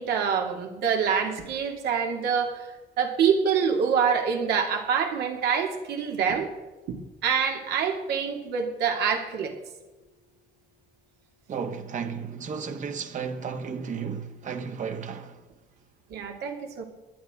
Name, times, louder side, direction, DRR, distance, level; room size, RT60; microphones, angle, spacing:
voice 1, 0.0-2.7 3.0-6.5 6.9-7.0 7.2-9.5 16.1-16.8, right 6 dB, 75° right, 2.5 m, -26 dB
voice 2, 11.5-15.4, right 6 dB, 45° right, 1.4 m, -33 dB
19.5 x 12.0 x 3.7 m
cardioid pair, 110°, 17 cm